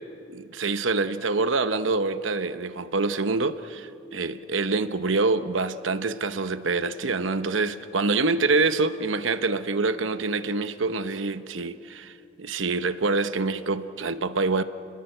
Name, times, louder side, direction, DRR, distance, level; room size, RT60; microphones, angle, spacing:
voice 1, 0.3-14.6, right 3 dB, 85° right, 11 dB, 0.9 m, -26 dB
29.0 x 21.0 x 7.9 m, 2.8 s
head